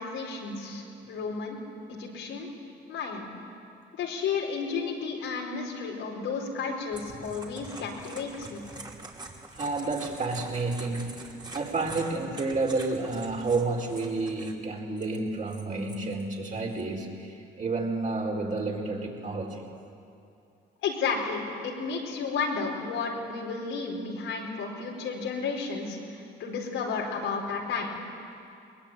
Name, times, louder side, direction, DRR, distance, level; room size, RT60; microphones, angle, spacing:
voice 1, 0.0-1.6 1.9-2.5 2.9-3.3 3.9-8.7 20.8-28.0, left 5 dB, 90° left, -1 dB, 4.6 m, -32 dB
sound 1, 6.9-14.5 15.0-16.8, right 2 dB, 20° right, 3.0 m, -45 dB
voice 2, 9.5-19.7, right 3 dB, 40° right, 0 dB, 4.6 m, -30 dB
22.0 x 20.5 x 9.2 m, 2.6 s
cardioid pair, 90°, 20 cm